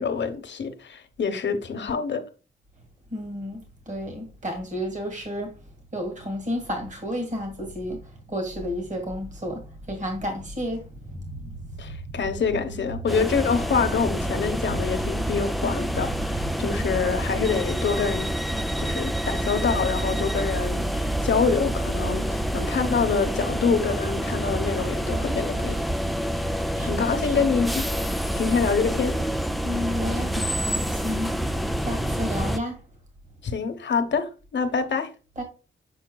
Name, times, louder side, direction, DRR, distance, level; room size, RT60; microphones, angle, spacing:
voice 1, 0.0-2.2 11.8-18.3 18.8-25.8 26.8-27.8 28.4-29.2 33.4-35.1, left 5 dB, 65° left, 1.0 m, -26 dB
voice 2, 3.1-5.5 5.9-12.0 16.5-16.6 26.7-27.4 29.6-32.8 35.4-35.5, equal, 40° right, 1.8 m, -32 dB
sound 1, 13.1-32.6, equal, ahead, 0.3 m, -27 dB
7.1 x 5.8 x 2.2 m
wide cardioid pair, 160°, 20 cm